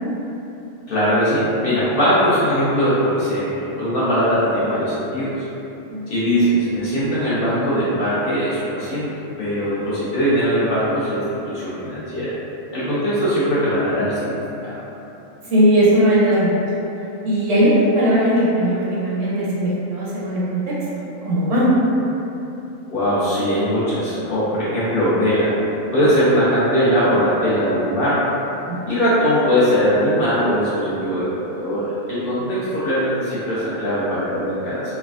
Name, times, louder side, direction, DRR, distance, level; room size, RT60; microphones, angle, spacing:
voice 1, 0.9-5.3 6.1-9.1 9.4-12.3 12.7-14.3 14.6-14.8 22.9-25.5 25.9-28.4 28.9-31.3 31.6-34.8, equal, 55° left, -11 dB, 0.7 m, -20 dB
voice 2, 15.5-16.6 17.2-20.7 21.2-21.7 28.7-28.8, equal, 65° right, -7 dB, 0.8 m, -18 dB
3.3 x 2.2 x 2.3 m, 3.0 s
omnidirectional pair, 1.4 m